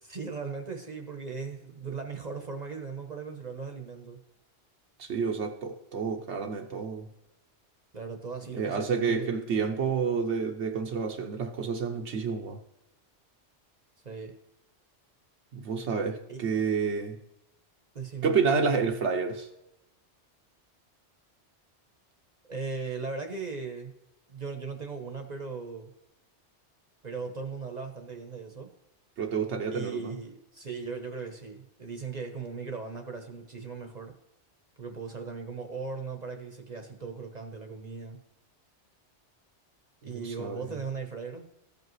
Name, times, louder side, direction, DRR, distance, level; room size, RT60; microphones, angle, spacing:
voice 1, 0.0-4.2 7.9-9.4 14.0-14.4 16.3-16.6 17.9-18.3 22.4-23.9 24.3-25.9 27.0-28.7 29.7-34.1 34.8-38.2 40.0-41.5, right 5 dB, 40° right, 0.9 m, -38 dB
voice 2, 5.0-7.1 8.5-12.6 15.5-17.2 18.2-19.5 29.2-30.1 40.1-40.6, right 5 dB, 80° right, 1.0 m, -29 dB
14.5 x 5.3 x 3.1 m
omnidirectional pair, 1.2 m